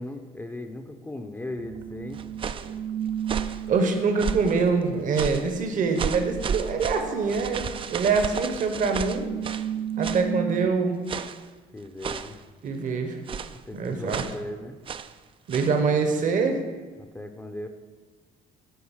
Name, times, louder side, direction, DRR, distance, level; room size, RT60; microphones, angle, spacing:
voice 1, 0.0-2.2 11.7-12.4 13.6-14.8 17.0-17.7, left 1 dB, 10° left, 6 dB, 0.6 m, -37 dB
sound 1, 1.6-10.7, right 9 dB, 80° right, 0.8 m, -35 dB
sound 2, 2.1-2.7 3.2-3.6 4.2-4.6 5.1-5.5 6.0-9.7 10.0-10.3 11.1-11.5 12.0-12.4 13.3-13.6 14.1-14.4 14.9-15.1 15.5-15.8, right 6 dB, 30° right, 0.4 m, -33 dB
voice 2, 3.7-9.3 10.0-11.0 12.6-13.2 13.7-14.2 15.5-16.6, right 4 dB, 50° right, 6 dB, 1.0 m, -24 dB
9.4 x 4.0 x 7.2 m, 1.4 s
cardioid pair, 110°, 17 cm